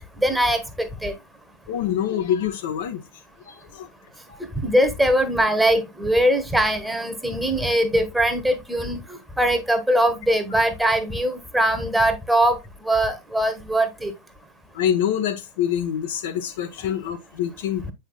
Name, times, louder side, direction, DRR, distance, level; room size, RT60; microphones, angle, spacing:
voice 1, 0.2-1.1 4.6-9.0 9.4-12.6 12.8-14.1, right 1 dB, 5° right, 1.2 m, -21 dB
voice 2, 1.7-3.0 3.5-3.9 4.3-4.4 14.7-17.8, left 9 dB, 55° left, 0.9 m, -25 dB
8.1 x 5.5 x 2.2 m
figure-of-eight pair, 90°, 0 cm